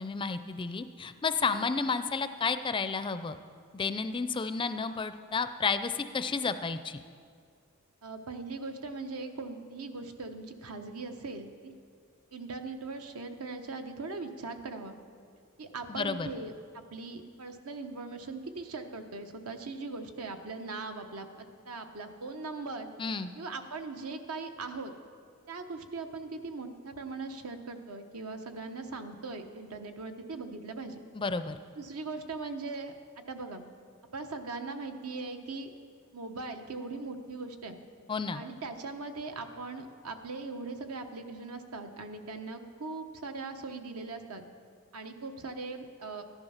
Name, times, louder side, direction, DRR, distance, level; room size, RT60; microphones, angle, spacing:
voice 1, 0.0-3.4 3.7-7.0 15.9-16.3 23.0-23.3 31.1-31.6 38.1-38.4, left 4 dB, 20° left, 11 dB, 0.4 m, -31 dB
voice 2, 8.0-11.7 12.3-15.0 15.6-22.9 23.4-24.9 25.5-31.0 31.8-33.6 34.1-35.7 36.1-37.8 38.3-44.4 44.9-46.2, right 3 dB, 80° right, 6 dB, 1.0 m, -40 dB
14.0 x 11.0 x 5.7 m, 2.1 s
head